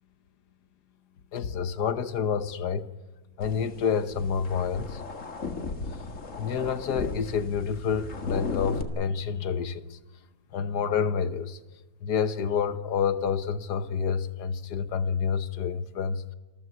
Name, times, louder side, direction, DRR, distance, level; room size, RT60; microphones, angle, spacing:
voice 1, 1.3-2.9 3.4-5.0 6.4-10.0 10.5-11.6 12.0-16.2, left 6 dB, 70° left, 1.6 m, -28 dB
sound 1, 3.4-8.8, left 4 dB, 45° left, 2.2 m, -36 dB
27.0 x 14.5 x 9.8 m
omnidirectional pair, 1.8 m